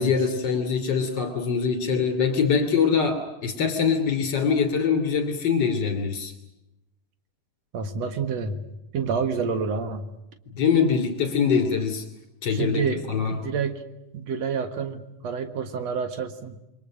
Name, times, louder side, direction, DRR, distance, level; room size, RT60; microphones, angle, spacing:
voice 1, 0.0-6.3 10.5-12.0 12.4-12.8 13.1-13.4, left 6 dB, 35° left, 5 dB, 3.3 m, -23 dB
voice 2, 7.7-8.7 8.9-10.1 12.5-13.8 14.1-16.6, right 5 dB, 55° right, 8 dB, 2.5 m, -28 dB
28.5 x 23.5 x 6.5 m, 0.92 s
omnidirectional pair, 3.9 m